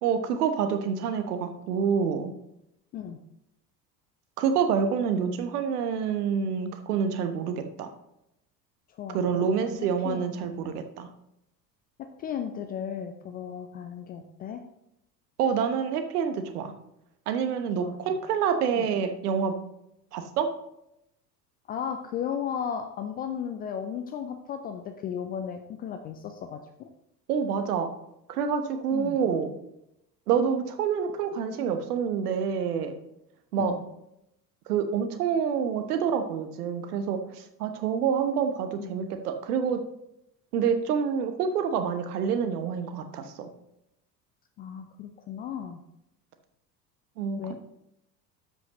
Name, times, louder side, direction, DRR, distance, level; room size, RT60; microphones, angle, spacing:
voice 1, 0.0-2.3 4.4-7.9 9.1-11.1 15.4-16.7 17.3-19.5 20.1-20.5 27.3-27.9 28.3-29.5 30.3-33.0 33.5-33.7 34.7-39.8 40.5-43.5 47.2-47.5, right 7 dB, 65° right, 7 dB, 1.1 m, -27 dB
voice 2, 8.9-10.3 10.6-10.8 12.2-14.6 17.8-18.0 18.8-18.9 21.7-26.9 28.9-29.2 33.6-33.8 38.8-38.9 44.6-45.8 47.4-47.5, left 8 dB, 20° left, 7 dB, 0.3 m, -35 dB
13.0 x 5.2 x 2.9 m, 0.81 s
figure-of-eight pair, 70°, 50 cm